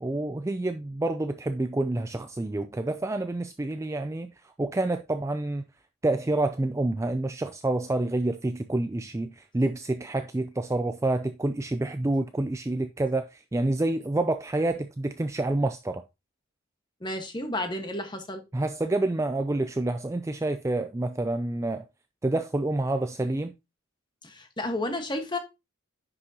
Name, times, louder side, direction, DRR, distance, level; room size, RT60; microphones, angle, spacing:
voice 1, 0.0-4.3 4.6-5.6 6.0-16.0 18.5-21.8 22.2-23.5, right 2 dB, 15° right, 0.3 m, -28 dB
voice 2, 17.0-18.4 24.2-25.4, left 1 dB, 20° left, 1.4 m, -32 dB
9.7 x 6.2 x 2.9 m
head